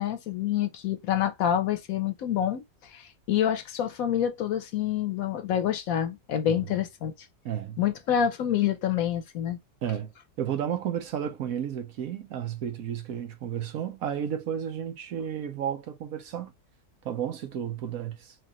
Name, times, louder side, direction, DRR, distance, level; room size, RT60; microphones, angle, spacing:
voice 1, 0.0-2.6 2.9-7.1 7.8-9.6, left 10 dB, 70° left, 1.1 m, -27 dB
voice 2, 7.4-7.8 9.8-10.1 10.4-16.5 17.0-18.3, right 9 dB, 70° right, 1.2 m, -32 dB
4.7 x 2.4 x 2.9 m
omnidirectional pair, 1.6 m